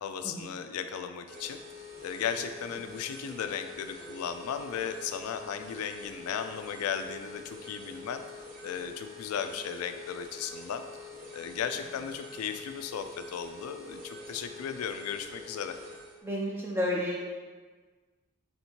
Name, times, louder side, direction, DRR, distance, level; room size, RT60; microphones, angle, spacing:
voice 1, 0.0-1.6 2.0-8.2 8.6-10.8 11.3-15.8, left 7 dB, 90° left, 8 dB, 0.3 m, -36 dB
sound 1, 1.2-16.2, left 2 dB, 40° right, 0.7 m, -46 dB
voice 2, 16.2-17.2, left 1 dB, 10° right, -3 dB, 0.3 m, -31 dB
4.4 x 3.5 x 2.8 m, 1.4 s
head